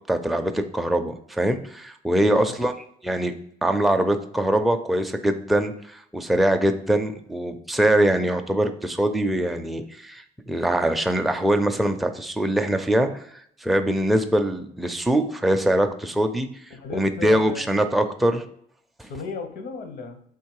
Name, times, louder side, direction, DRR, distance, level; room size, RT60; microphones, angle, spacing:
voice 1, 0.1-2.7 3.0-3.3 3.6-13.2 13.6-16.5 16.9-18.4 19.0-19.1, right 1 dB, ahead, 5 dB, 0.4 m, -23 dB
voice 2, 16.7-17.6 19.1-20.2, left 5 dB, 65° left, 7 dB, 0.8 m, -35 dB
3.7 x 2.9 x 4.6 m, 0.66 s
cardioid pair, 110°, 17 cm